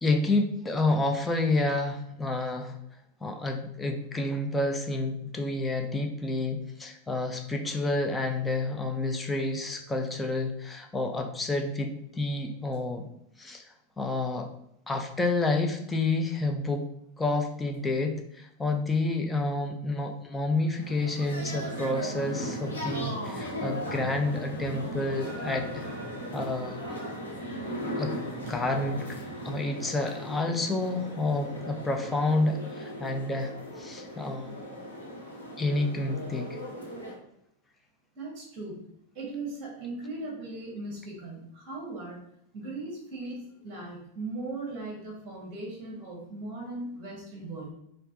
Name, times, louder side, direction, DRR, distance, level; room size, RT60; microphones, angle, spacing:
voice 1, 0.0-2.8 3.2-13.1 13.4-13.6 14.0-14.5 14.9-16.9 17.2-25.8 26.3-26.9 28.0-28.2 28.5-29.0 29.4-33.5 33.8-34.7 35.6-36.6, left 2 dB, 10° left, 4 dB, 0.6 m, -29 dB
sound 1, 20.7-37.1, equal, 80° left, 1.4 m, -37 dB
voice 2, 38.2-38.9 39.1-42.2 42.5-47.7, right 2 dB, 30° right, -4 dB, 1.7 m, -38 dB
4.4 x 2.6 x 3.9 m, 0.76 s
figure-of-eight pair, 90°, 0 cm